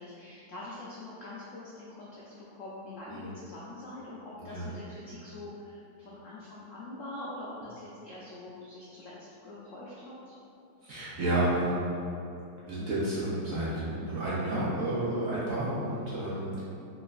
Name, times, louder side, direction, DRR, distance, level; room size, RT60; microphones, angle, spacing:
voice 1, 0.0-2.2 2.5-9.1 9.4-10.3 16.5-16.6, left 2 dB, 90° left, -7 dB, 0.6 m, -44 dB
voice 2, 10.8-11.8 12.6-16.6, right 1 dB, 60° right, -9 dB, 0.9 m, -31 dB
5.0 x 3.2 x 2.4 m, 2.8 s
omnidirectional pair, 2.0 m